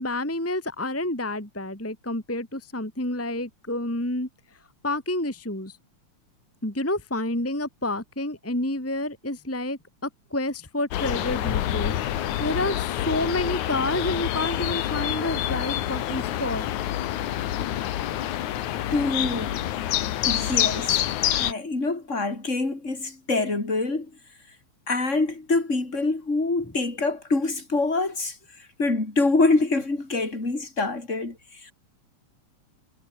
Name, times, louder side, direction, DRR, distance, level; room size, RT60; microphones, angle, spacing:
voice 1, 0.0-4.3 4.8-5.7 6.6-12.0 12.4-16.7, left 1 dB, 5° left, 2.3 m, -29 dB
sound 1, 10.9-21.5, left 12 dB, 85° left, 2.7 m, -27 dB
voice 2, 18.9-19.6 20.3-24.1 24.9-28.4 28.8-31.4 31.6-31.7, left 3 dB, 25° left, 5.4 m, -25 dB
omnidirectional pair, 3.3 m